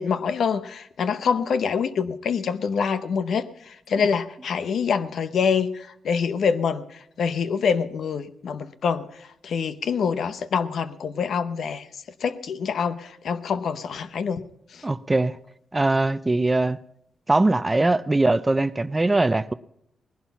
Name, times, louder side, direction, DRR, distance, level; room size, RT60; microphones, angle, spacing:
voice 1, 0.0-6.8 7.2-9.1 9.4-11.9 12.2-14.4 14.7-14.8, left 6 dB, 70° left, 0.8 m, -25 dB
voice 2, 14.8-15.4 15.7-16.8 17.3-19.5, right 2 dB, 20° right, 0.5 m, -21 dB
19.0 x 11.0 x 5.8 m
cardioid pair, 90°, 0 cm